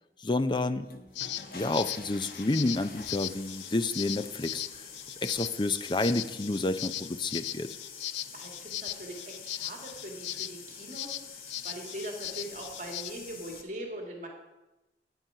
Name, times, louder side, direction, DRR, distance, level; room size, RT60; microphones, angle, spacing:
voice 1, 0.2-0.9 1.5-4.8 5.2-7.8, left 2 dB, 25° left, 12 dB, 0.4 m, -29 dB
sound 1, 0.7-13.6, left 5 dB, 55° left, 1.1 m, -47 dB
sound 2, 1.2-13.1, left 13 dB, 85° left, 0.4 m, -39 dB
voice 2, 8.3-14.3, right 1 dB, 45° right, 1 dB, 1.9 m, -41 dB
10.5 x 9.2 x 5.5 m, 1.0 s
head